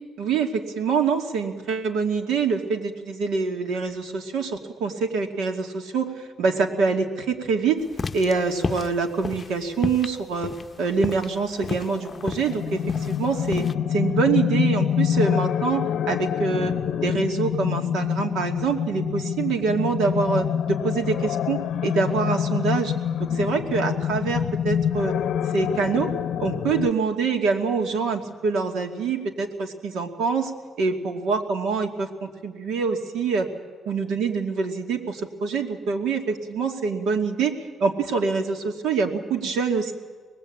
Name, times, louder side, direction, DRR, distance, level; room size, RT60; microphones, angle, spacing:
voice 1, 0.2-7.8 8.1-10.5 10.8-13.6 13.9-16.7 17.0-22.9 23.2-25.1 25.5-26.1 26.4-30.5 30.8-33.5 33.9-37.5 37.8-39.9, right 5 dB, 80° right, 4 dB, 2.5 m, -25 dB
sound 1, 7.9-13.7, left 4 dB, 35° left, 0.7 m, -32 dB
sound 2, 11.6-26.9, left 9 dB, 70° left, 0.6 m, -26 dB
25.0 x 20.5 x 8.7 m, 1.5 s
cardioid pair, 90°, 0 cm